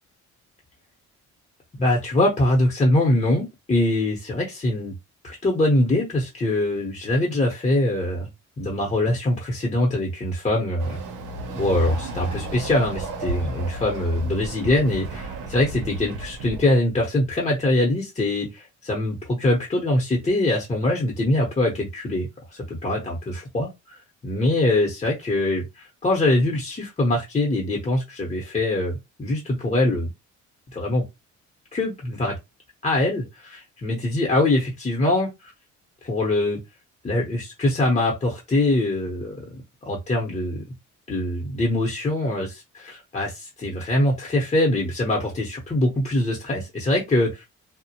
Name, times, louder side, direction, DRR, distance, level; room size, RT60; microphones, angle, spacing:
voice 1, 1.8-4.9 5.2-8.3 8.6-11.0 11.5-30.1 30.7-31.0 31.7-32.3 32.8-35.5 36.0-36.6 37.0-39.4 39.9-40.6 41.1-47.4, left 1 dB, 25° left, 0.8 m, -23 dB
Chatter / Car passing by / Motorcycle, 10.8-16.7, right 2 dB, 90° right, 0.7 m, -34 dB
2.3 x 2.1 x 2.8 m
cardioid pair, 90°, 30 cm